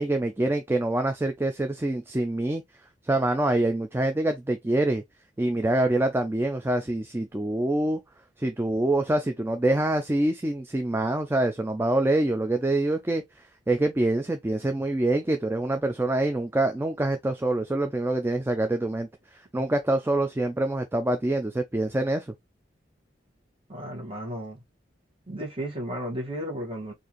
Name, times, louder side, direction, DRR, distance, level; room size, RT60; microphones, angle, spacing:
voice 1, 0.0-2.6 3.0-5.0 5.4-8.0 8.4-13.2 13.7-19.1 19.5-22.3, right 1 dB, 10° right, 0.4 m, -25 dB
voice 2, 23.7-24.6 25.3-26.9, equal, 30° right, 1.5 m, -34 dB
4.6 x 2.6 x 3.0 m
head